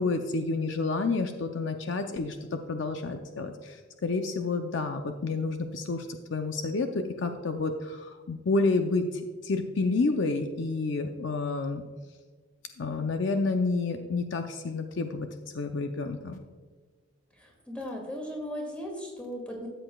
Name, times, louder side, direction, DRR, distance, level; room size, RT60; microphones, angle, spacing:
voice 1, 0.0-11.8 12.8-15.3 15.5-16.4, left 3 dB, 60° left, 6 dB, 0.5 m, -29 dB
voice 2, 17.4-19.7, equal, 5° left, -1 dB, 2.2 m, -37 dB
13.0 x 7.8 x 2.3 m, 1.4 s
head